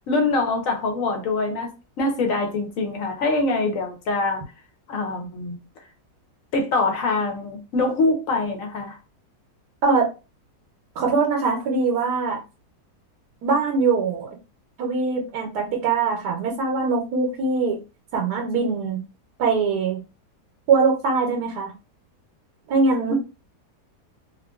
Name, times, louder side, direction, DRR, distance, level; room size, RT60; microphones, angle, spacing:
voice 1, 0.1-1.7 2.0-4.4 4.9-5.6 6.5-9.0 23.1-23.2, left 3 dB, 60° left, 1.1 m, -24 dB
voice 2, 11.0-12.4 13.4-14.3 14.8-17.8 18.1-19.0 19.4-20.0 20.7-21.7 22.7-23.2, right 4 dB, 80° right, 1.2 m, -22 dB
2.9 x 2.6 x 2.2 m
omnidirectional pair, 1.7 m